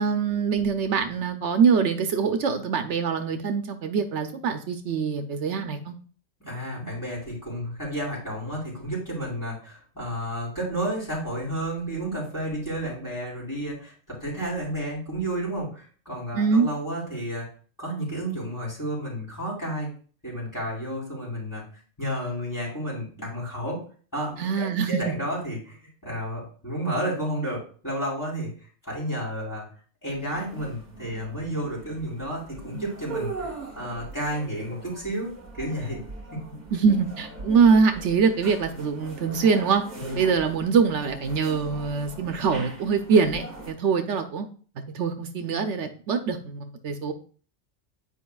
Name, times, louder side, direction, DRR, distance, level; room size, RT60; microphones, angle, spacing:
voice 1, 0.0-6.0 16.3-16.7 24.4-25.0 36.7-39.8 40.1-44.5 44.9-47.1, right 5 dB, 75° right, 7 dB, 1.0 m, -23 dB
voice 2, 6.4-17.5 17.8-19.9 20.2-21.6 22.0-23.8 24.1-25.8 26.0-28.5 28.8-29.7 30.0-33.5 33.7-35.3 35.6-36.0 36.3-36.4 40.0-40.2, right 1 dB, 15° left, -5 dB, 3.9 m, -31 dB
sound 1, 30.1-43.7, right 3 dB, 40° right, 1.4 m, -41 dB
10.0 x 5.0 x 2.3 m, 0.42 s
omnidirectional pair, 1.2 m